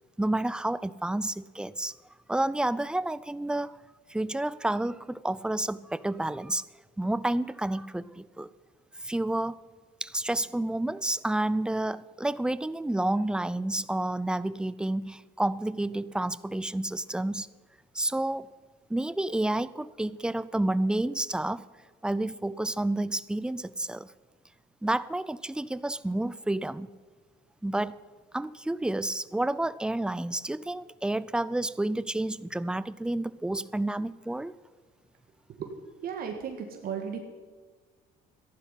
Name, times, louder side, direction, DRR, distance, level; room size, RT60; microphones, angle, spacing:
voice 1, 0.2-1.9 2.3-3.8 4.1-6.6 7.0-8.5 9.0-9.6 10.0-17.5 17.9-18.5 18.9-21.7 22.0-24.1 24.8-26.9 27.6-28.0 28.3-34.6, right 1 dB, 5° right, 17 dB, 0.4 m, -30 dB
voice 2, 36.0-37.2, right 7 dB, 60° right, 4 dB, 1.7 m, -35 dB
14.5 x 11.0 x 5.7 m, 1.5 s
cardioid pair, 110°, 17 cm